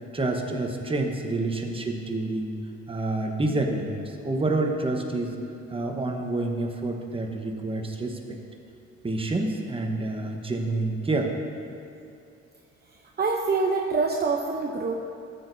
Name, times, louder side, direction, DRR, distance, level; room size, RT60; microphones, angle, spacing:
voice 1, 0.1-2.5 2.9-5.3 5.7-8.4 9.0-11.4, right 2 dB, 20° right, 2 dB, 1.0 m, -28 dB
voice 2, 13.2-14.9, right 4 dB, 35° right, 0 dB, 0.7 m, -25 dB
13.5 x 8.2 x 2.7 m, 2.6 s
cardioid pair, 90°, 30 cm